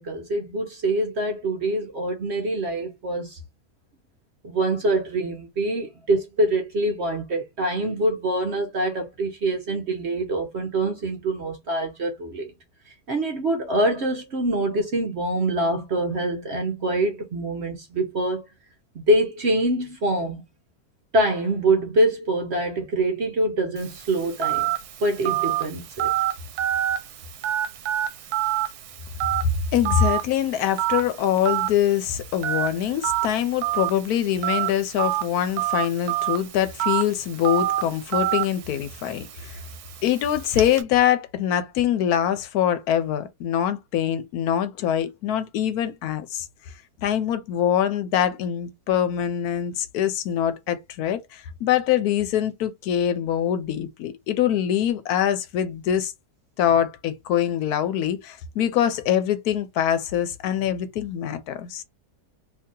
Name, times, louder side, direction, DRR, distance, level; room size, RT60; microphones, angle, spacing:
voice 1, 0.0-3.4 4.4-12.5 12.9-18.4 18.9-20.4 21.1-24.7 25.0-26.1, right 1 dB, 55° right, 0.8 m, -25 dB
Telephone, 23.8-40.8, right 13 dB, 75° right, 1.1 m, -28 dB
voice 2, 29.7-39.6 40.0-46.5 47.0-56.1 56.6-61.8, left 10 dB, 75° left, 1.0 m, -24 dB
2.7 x 2.7 x 3.6 m
omnidirectional pair, 1.7 m